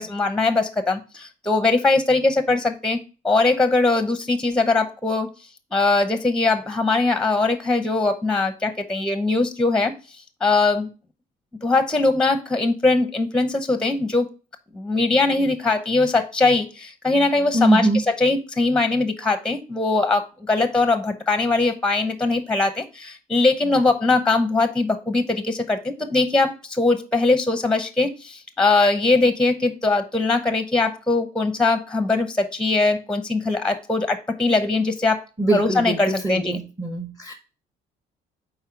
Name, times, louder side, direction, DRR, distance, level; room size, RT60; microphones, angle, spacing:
voice 1, 0.0-3.0 3.2-5.3 5.7-9.9 10.4-10.9 11.6-14.3 14.7-35.2 35.5-36.6, left 3 dB, 5° left, 0.8 m, -21 dB
voice 2, 17.5-18.0 35.4-37.3, right 2 dB, 15° right, 1.0 m, -22 dB
5.6 x 4.4 x 4.4 m
cardioid pair, 110°, 17 cm